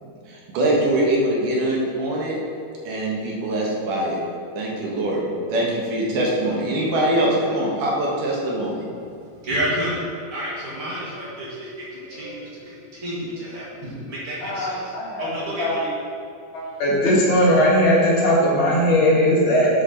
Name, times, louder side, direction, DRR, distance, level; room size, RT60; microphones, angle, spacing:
voice 1, 0.0-2.4 2.8-4.2 4.5-8.8, right 1 dB, 85° right, -3 dB, 3.1 m, -23 dB
voice 2, 8.9-10.0 10.3-14.8 15.2-15.9 16.9-17.0, right 1 dB, 45° right, -7 dB, 2.8 m, -30 dB
voice 3, 14.4-15.3 15.6-15.8 16.5-19.7, equal, 85° left, -6 dB, 3.6 m, -19 dB
12.0 x 4.8 x 4.5 m, 2.5 s
omnidirectional pair, 3.6 m